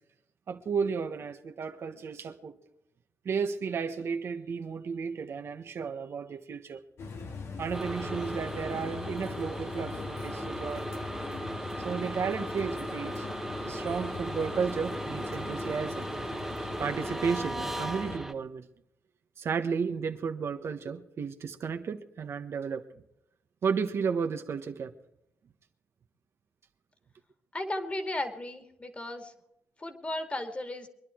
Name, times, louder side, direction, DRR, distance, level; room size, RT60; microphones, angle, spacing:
voice 1, 0.5-2.6 3.2-6.8 7.6-10.9 11.8-13.3 13.6-16.0 16.8-18.7 19.4-22.8 23.6-24.9, right 6 dB, 70° right, 1.4 m, -33 dB
sound 1, 7.0-18.2, left 4 dB, 75° left, 2.1 m, -41 dB
sound 2, 7.7-18.3, right 1 dB, 5° right, 1.3 m, -37 dB
voice 2, 27.5-29.3 29.8-30.9, left 1 dB, 25° left, 2.5 m, -35 dB
24.0 x 11.0 x 4.6 m
cardioid pair, 80°, 5 cm